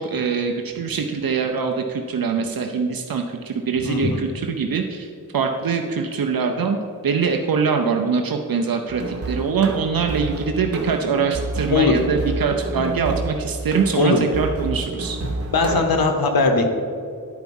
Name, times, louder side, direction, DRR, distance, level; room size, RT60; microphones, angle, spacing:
voice 1, 0.0-6.8 7.0-15.2, right 5 dB, 80° right, 4 dB, 0.7 m, -23 dB
voice 2, 3.8-4.2 11.7-11.9 14.0-14.2 15.5-16.8, left 3 dB, 85° left, 4 dB, 1.0 m, -19 dB
sound 1, 8.9-15.8, right 3 dB, 40° right, 1.0 m, -29 dB
10.5 x 4.6 x 5.4 m, 2.3 s
wide cardioid pair, 65°, 35 cm